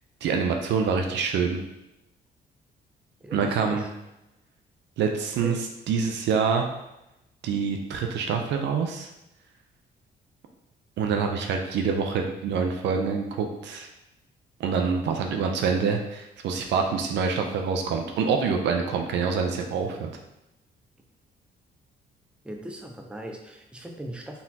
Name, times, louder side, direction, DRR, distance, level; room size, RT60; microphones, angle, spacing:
voice 1, 0.2-1.6 3.3-3.8 5.0-5.5 5.9-6.7 7.4-9.1 11.0-13.9 14.6-20.1, right 5 dB, 80° right, 4 dB, 0.6 m, -26 dB
voice 2, 3.2-3.9 5.4-5.6 22.4-24.4, right 1 dB, 5° right, 2 dB, 0.6 m, -38 dB
4.1 x 3.7 x 2.8 m, 0.90 s
cardioid pair, 105°, 18 cm